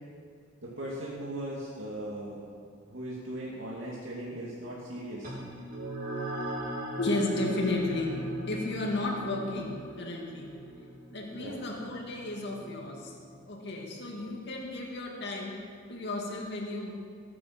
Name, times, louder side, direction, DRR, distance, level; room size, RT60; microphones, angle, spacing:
voice 1, 0.6-2.4 2.9-5.3 11.4-11.6, right 1 dB, 65° right, -6 dB, 2.5 m, -38 dB
sound 1, 5.2-14.1, right 1 dB, 45° right, 3.9 m, -40 dB
voice 2, 7.0-10.6 11.1-13.2 13.5-16.9, left 2 dB, 60° left, -1 dB, 2.3 m, -33 dB
20.5 x 9.4 x 6.0 m, 2.2 s
head